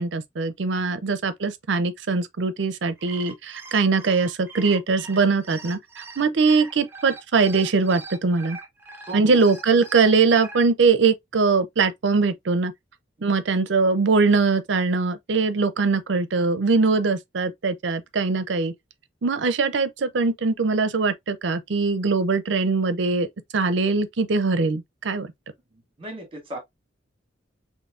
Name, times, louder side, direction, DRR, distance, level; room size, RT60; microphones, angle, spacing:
voice 1, 0.0-8.6 9.1-12.7 13.2-18.7 19.2-23.3 23.5-25.3, right 4 dB, 70° right, 0.5 m, -22 dB
sound 1, 2.8-10.6, right 3 dB, 10° right, 0.8 m, -42 dB
voice 2, 9.1-9.4 13.2-13.3 25.7-26.6, right 2 dB, 30° right, 1.5 m, -37 dB
4.4 x 3.0 x 2.5 m
head